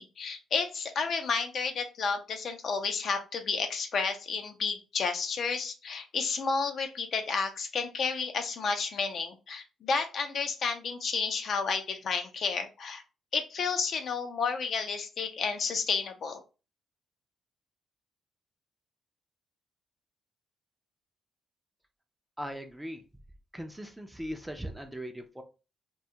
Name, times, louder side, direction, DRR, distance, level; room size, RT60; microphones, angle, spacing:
voice 1, 0.0-13.0 13.3-16.4, left 5 dB, 55° left, 6 dB, 0.5 m, -31 dB
voice 2, 22.4-23.0 23.5-25.4, equal, 10° right, 6 dB, 0.4 m, -39 dB
2.3 x 2.2 x 2.8 m, 0.31 s
cardioid pair, 90°, 0 cm